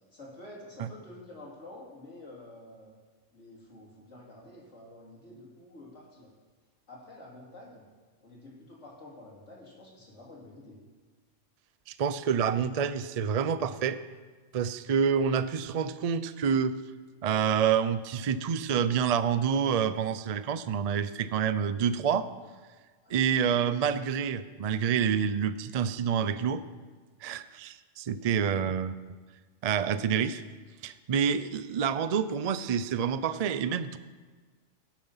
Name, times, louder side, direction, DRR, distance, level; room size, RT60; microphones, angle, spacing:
voice 1, 0.1-2.9 3.3-6.3 6.9-7.9 8.2-10.8 23.0-23.2 28.1-28.2, left 1 dB, 65° left, -5 dB, 3.2 m, -49 dB
voice 2, 11.9-14.0 14.5-16.8 17.2-22.3 23.1-26.6 27.2-29.0 29.6-30.4 30.8-34.0, right 7 dB, 60° right, 13 dB, 0.4 m, -28 dB
17.5 x 7.4 x 5.6 m, 1.4 s
omnidirectional pair, 1.3 m